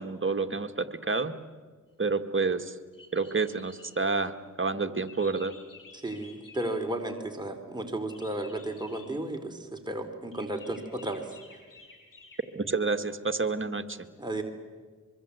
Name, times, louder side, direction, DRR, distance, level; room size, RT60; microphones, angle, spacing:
voice 1, 0.0-1.3 2.0-2.7 3.1-5.5 12.5-14.0, right 4 dB, 35° right, 7 dB, 1.8 m, -29 dB
sound 1, 2.9-4.1 5.0-7.0 8.1-9.2 10.3-12.7, left 4 dB, 75° left, 4.4 m, -53 dB
voice 2, 5.9-11.6 14.2-14.4, right 1 dB, 15° right, 3 dB, 3.2 m, -34 dB
24.5 x 23.0 x 8.2 m, 1.5 s
cardioid pair, 40°, 34 cm